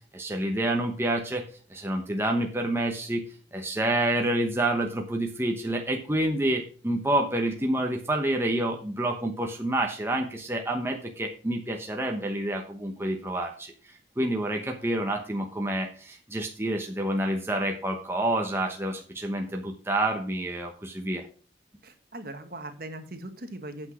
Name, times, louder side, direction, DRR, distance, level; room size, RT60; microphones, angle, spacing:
voice 1, 0.1-1.4 1.7-3.2 3.5-21.3, right 1 dB, 15° right, 2 dB, 1.0 m, -28 dB
voice 2, 21.8-23.9, right 1 dB, 55° right, 7 dB, 1.5 m, -40 dB
8.9 x 6.0 x 6.2 m, 0.41 s
head